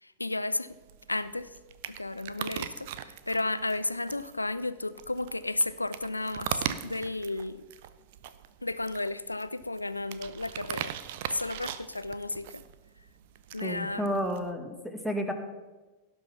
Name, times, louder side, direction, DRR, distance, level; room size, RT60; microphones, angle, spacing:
voice 1, 0.0-0.8 1.1-1.6 1.9-7.6 8.6-10.9 11.3-12.6 13.5-14.1, left 2 dB, 85° left, 15 dB, 0.5 m, -33 dB
sound 1, 0.7-14.5, right 11 dB, 50° right, 0.7 m, -40 dB
voice 2, 13.6-15.3, equal, ahead, 5 dB, 1.7 m, -31 dB
17.0 x 6.1 x 5.7 m, 1.2 s
figure-of-eight pair, 90°, 0 cm